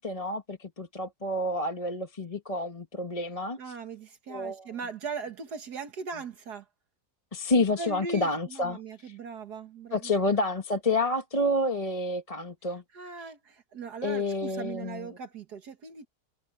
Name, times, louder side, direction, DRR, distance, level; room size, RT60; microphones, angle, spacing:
voice 1, 0.0-3.6 4.3-4.7 7.3-9.1 9.9-12.8 14.0-15.1, left 2 dB, 20° left, 1.4 m, -29 dB
voice 2, 3.6-6.7 7.8-10.1 12.9-16.1, right 4 dB, 70° right, 2.0 m, -39 dB
omnidirectional pair, 1.8 m